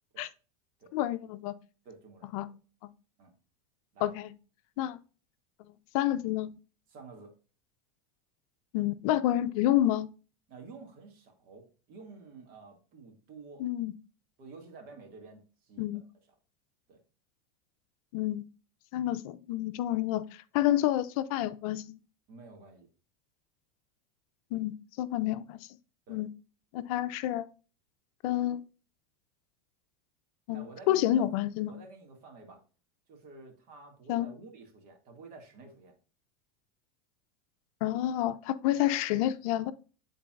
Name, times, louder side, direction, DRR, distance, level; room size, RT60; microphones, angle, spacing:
voice 1, 0.9-1.5 2.3-2.5 4.0-4.3 4.8-5.0 5.9-6.5 8.7-10.1 13.6-13.9 15.8-16.0 18.1-18.4 18.9-22.0 24.5-25.7 26.1-26.3 26.7-27.5 28.2-28.6 30.5-31.8 34.1-34.3 37.8-39.7, left 13 dB, 65° left, 0.5 m, -29 dB
voice 2, 1.9-2.4 3.2-3.3 3.9-4.2 4.8-4.9 6.9-7.3 10.5-13.7 14.4-16.0 16.9-17.0 22.3-22.9 25.2-25.3 26.1-26.2 30.5-31.3 31.6-32.6 33.1-36.0, right 4 dB, 50° right, 2.0 m, -50 dB
10.0 x 4.0 x 2.4 m
supercardioid pair, 120°, 19 cm